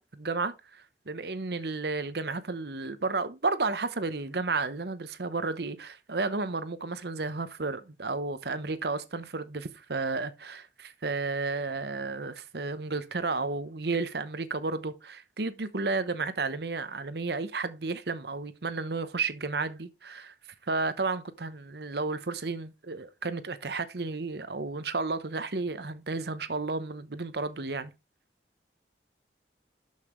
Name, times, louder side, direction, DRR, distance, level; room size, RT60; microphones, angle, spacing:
voice 1, 0.0-20.3 20.7-27.9, right 3 dB, 60° right, 0.9 m, -32 dB
12.0 x 5.8 x 3.1 m
head